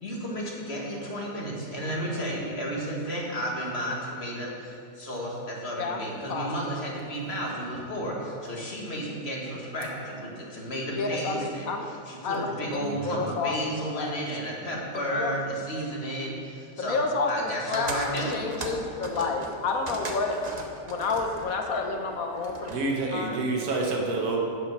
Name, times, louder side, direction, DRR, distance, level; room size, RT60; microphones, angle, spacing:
voice 1, 0.0-17.0 17.3-18.4 19.1-19.3, equal, 40° left, -3 dB, 2.0 m, -33 dB
voice 2, 5.8-6.7 10.9-11.9 12.2-12.8 13.0-13.5 14.0-14.2 14.9-15.3 16.8-20.4 20.9-22.7 23.1-23.4, left 4 dB, 65° left, 3 dB, 1.3 m, -30 dB
voice 3, 12.7-13.3 22.7-24.4, right 3 dB, 80° right, 0 dB, 1.8 m, -29 dB
sound 1, 17.7-22.9, right 2 dB, 35° right, 0.8 m, -38 dB
9.1 x 7.6 x 6.0 m, 2.4 s
omnidirectional pair, 1.6 m